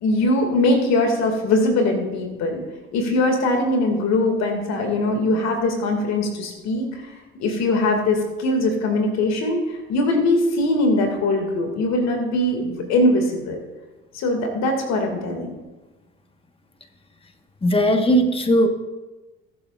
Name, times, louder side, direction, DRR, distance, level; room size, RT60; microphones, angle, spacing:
voice 1, 0.0-2.6 2.9-6.9 7.4-9.6 9.9-13.6 14.1-15.5, left 2 dB, 65° left, 3 dB, 2.3 m, -21 dB
voice 2, 17.6-18.7, equal, 20° left, 6 dB, 1.4 m, -18 dB
21.5 x 7.9 x 2.5 m, 1.2 s
hypercardioid pair, 65°, 29 cm